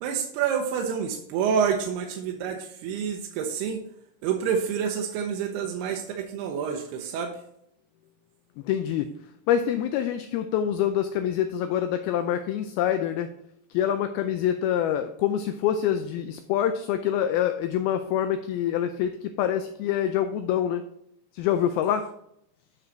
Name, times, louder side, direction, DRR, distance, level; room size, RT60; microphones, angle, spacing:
voice 1, 0.0-3.8 4.2-7.4, right 7 dB, 80° right, 2 dB, 2.7 m, -28 dB
voice 2, 8.7-9.1 9.5-13.3 13.7-20.8 21.3-22.1, left 10 dB, 85° left, 8 dB, 2.2 m, -26 dB
9.2 x 5.6 x 3.9 m, 0.74 s
omnidirectional pair, 4.8 m